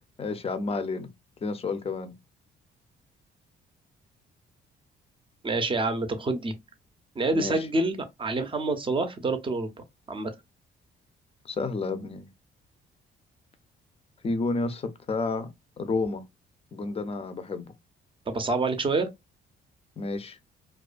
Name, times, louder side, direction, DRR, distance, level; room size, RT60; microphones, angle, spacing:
voice 1, 0.2-1.1 1.4-2.1 7.3-7.6 11.4-12.3 14.2-15.5 15.8-16.2 16.7-17.7 20.0-20.4, left 3 dB, 30° left, 0.5 m, -30 dB
voice 2, 5.4-6.5 7.2-9.7 10.1-10.3 18.3-19.1, right 2 dB, 25° right, 0.6 m, -27 dB
2.3 x 2.2 x 2.4 m
cardioid pair, 90°, 20 cm